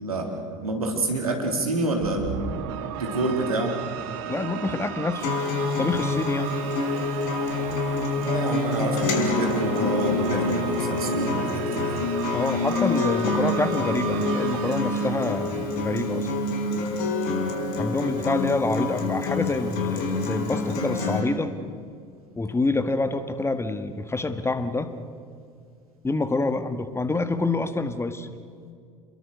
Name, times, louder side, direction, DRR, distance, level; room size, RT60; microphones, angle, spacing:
voice 1, 0.0-2.6 3.0-3.8 8.2-12.0, right 2 dB, 80° right, 3 dB, 3.8 m, -27 dB
sound 1, 2.0-16.4, right 9 dB, 60° right, 1.9 m, -35 dB
voice 2, 4.3-5.3 5.8-6.5 12.3-16.3 17.8-21.5 22.4-24.9 26.0-28.3, left 3 dB, 15° left, 10 dB, 1.7 m, -27 dB
Acoustic guitar, 5.2-21.2, left 3 dB, 55° left, 5.0 m, -27 dB
29.0 x 22.0 x 6.7 m, 2.3 s
figure-of-eight pair, 70°, 18 cm